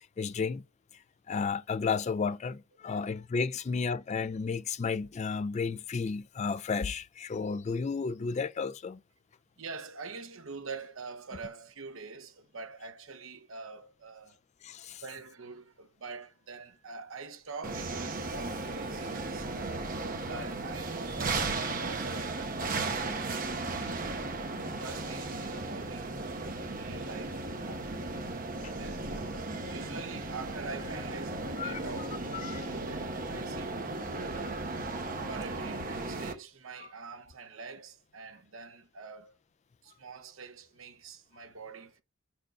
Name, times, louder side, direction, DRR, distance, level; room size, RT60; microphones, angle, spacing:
voice 1, 0.2-0.6 1.3-9.0 14.6-15.0 24.5-24.8 28.6-28.7 31.6-32.1 32.3-32.6 36.8-36.9, left 5 dB, 30° left, 0.3 m, -33 dB
voice 2, 9.6-14.4 15.0-22.8 23.8-24.1 24.8-28.2 28.8-29.3 29.7-33.8 34.1-34.7 35.3-39.4 39.8-42.0, right 4 dB, 65° right, 0.9 m, -45 dB
sound 1, 17.6-36.3, right 3 dB, 40° right, 1.0 m, -35 dB
5.2 x 4.4 x 4.5 m
head